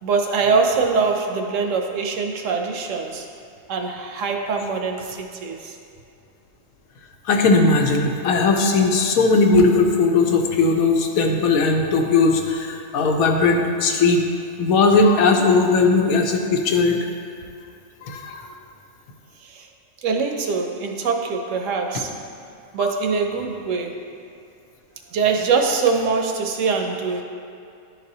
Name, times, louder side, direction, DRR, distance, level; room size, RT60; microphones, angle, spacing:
voice 1, 0.0-3.3 3.7-5.8 19.4-19.7 20.0-22.2 22.7-24.0 25.1-27.2, right 5 dB, 70° right, 3 dB, 0.9 m, -23 dB
voice 2, 7.3-14.3 14.6-17.0 18.1-18.4, left 3 dB, 80° left, 3 dB, 1.1 m, -18 dB
11.0 x 4.0 x 2.8 m, 2.5 s
omnidirectional pair, 1.5 m